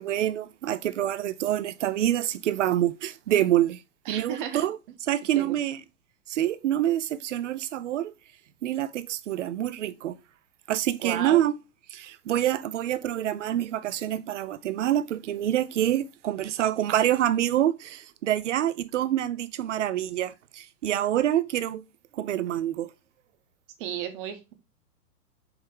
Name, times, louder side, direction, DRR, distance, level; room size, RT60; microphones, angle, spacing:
voice 1, 0.0-3.8 4.1-4.8 5.1-5.8 6.3-8.1 8.6-10.2 10.7-11.5 11.9-21.8 22.1-22.9, right 12 dB, 55° right, 0.5 m, -26 dB
voice 2, 4.1-4.6 5.3-5.5 11.0-11.4 23.8-24.5, right 9 dB, 35° right, 0.9 m, -33 dB
4.8 x 3.1 x 3.5 m
figure-of-eight pair, 110°, 46 cm